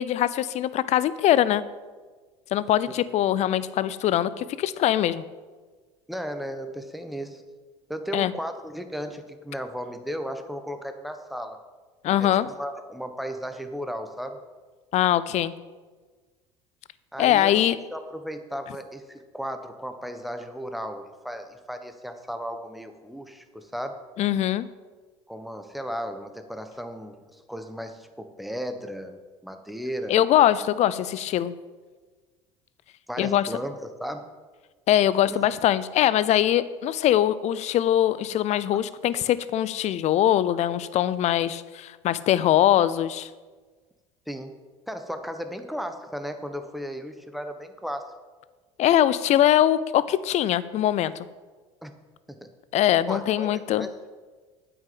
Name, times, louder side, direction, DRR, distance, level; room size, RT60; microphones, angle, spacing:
voice 1, 0.0-1.6 2.5-5.2 8.1-8.3 12.0-12.5 14.9-15.5 17.2-17.8 24.2-24.7 30.1-31.5 33.2-33.5 34.9-43.3 48.8-51.3 52.7-53.9, left 12 dB, 50° left, 17 dB, 0.6 m, -22 dB
voice 2, 6.1-7.4 7.9-11.6 12.2-14.4 17.1-17.6 17.9-24.0 25.3-30.2 33.1-34.2 35.3-35.5 44.3-44.6 44.9-48.1 51.8-51.9 52.3-52.5 53.1-53.9, equal, ahead, 7 dB, 1.2 m, -35 dB
8.9 x 6.5 x 7.8 m, 1.4 s
hypercardioid pair, 70°, 15 cm